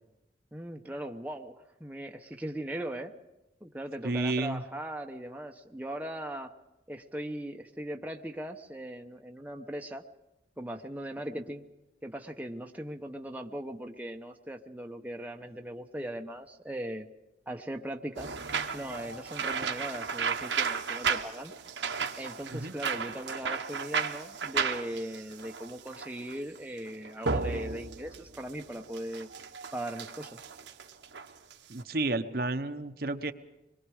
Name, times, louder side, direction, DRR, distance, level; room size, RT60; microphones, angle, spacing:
voice 1, 0.5-3.1 3.6-6.5 6.9-10.0 10.6-11.6 12.0-17.1 17.5-18.4 18.7-21.5 22.2-29.3 29.7-30.4, right 1 dB, 10° right, 2 dB, 0.8 m, -39 dB
voice 2, 4.0-4.6 22.5-22.7 31.7-33.3, right 2 dB, 55° right, 7 dB, 0.9 m, -31 dB
sound 1, 18.2-31.8, right 5 dB, 85° right, 1.3 m, -34 dB
26.0 x 22.0 x 4.9 m, 0.94 s
head